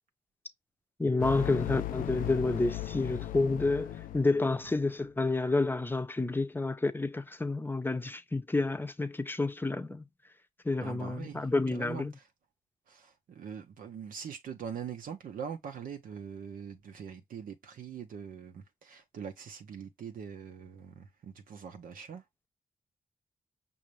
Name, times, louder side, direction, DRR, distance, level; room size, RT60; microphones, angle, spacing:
voice 1, 1.0-10.0 10.6-12.1, left 3 dB, 15° left, 0.7 m, -29 dB
sound 1, 1.2-4.8, left 13 dB, 85° left, 0.4 m, -37 dB
voice 2, 10.8-12.3 12.9-22.2, right 7 dB, 80° right, 0.8 m, -43 dB
5.5 x 2.6 x 3.2 m
cardioid pair, 60°, 14 cm